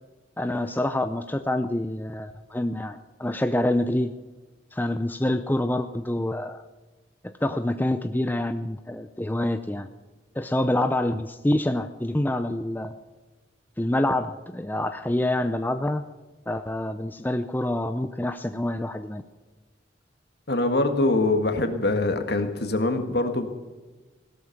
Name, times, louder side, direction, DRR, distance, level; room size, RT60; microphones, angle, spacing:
voice 1, 0.4-4.1 4.7-6.6 7.2-9.9 10.3-13.0 13.8-16.0 16.5-19.2, left 1 dB, 10° left, 9 dB, 0.5 m, -26 dB
voice 2, 20.5-23.5, left 2 dB, 60° left, 7 dB, 1.9 m, -23 dB
17.0 x 12.5 x 5.9 m, 1.2 s
head